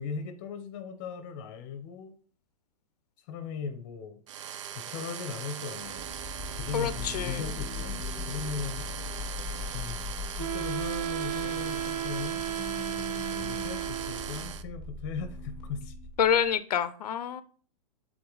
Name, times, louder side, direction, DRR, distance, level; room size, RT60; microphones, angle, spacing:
voice 1, 0.0-2.1 3.3-4.2 4.7-6.1 6.5-8.8 9.7-12.5 13.3-15.9, left 6 dB, 30° left, 9 dB, 0.8 m, -38 dB
sound 1, 4.3-14.6, right 9 dB, 50° right, 0.5 m, -40 dB
sound 2, 5.9-16.5, left 5 dB, 5° left, 1.1 m, -40 dB
voice 2, 6.7-7.4 16.2-17.4, left 8 dB, 85° left, 14 dB, 0.6 m, -27 dB
Wind instrument woodwind instrument, 10.4-14.5, right 11 dB, 75° right, 1.1 m, -34 dB
7.7 x 3.9 x 3.9 m, 0.43 s
hypercardioid pair, 170°, 20 cm